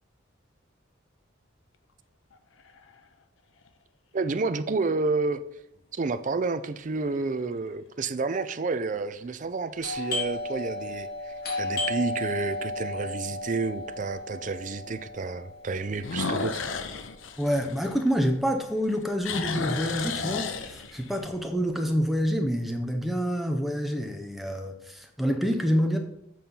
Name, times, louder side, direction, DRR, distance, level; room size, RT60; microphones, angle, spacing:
sound 1, 2.3-3.0 3.7-3.8 9.0-9.5 9.9-10.0 10.6-10.7 10.9-11.0 12.5-12.6 16.0-18.5 18.8-21.2, left 4 dB, 80° left, 0.6 m, -33 dB
voice 1, 4.1-5.4 5.9-16.6, right 3 dB, 40° right, 12 dB, 0.4 m, -30 dB
Doorbell, 9.8-19.2 19.4-19.5 20.2-20.5 20.8-22.2, left 2 dB, 50° left, 2.2 m, -35 dB
voice 2, 17.4-26.0, equal, ahead, 4 dB, 0.7 m, -27 dB
7.6 x 4.3 x 5.3 m, 0.80 s
head